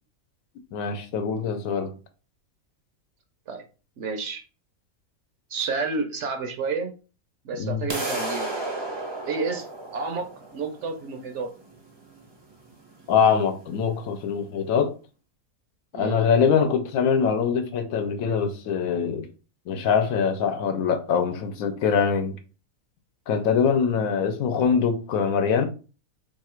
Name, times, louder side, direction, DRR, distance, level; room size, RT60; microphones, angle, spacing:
voice 1, 0.7-1.9 7.6-7.8 13.1-14.9 15.9-19.3 19.7-22.4 23.3-25.7, left 6 dB, 75° left, 1.1 m, -23 dB
voice 2, 4.0-4.4 5.5-6.9 7.4-8.6 9.3-9.7 9.9-10.3 10.5-11.5 15.9-16.3, right 4 dB, 65° right, 0.8 m, -30 dB
sound 1, 7.9-13.9, right 2 dB, 30° right, 0.5 m, -34 dB
3.0 x 2.4 x 4.3 m
omnidirectional pair, 1.5 m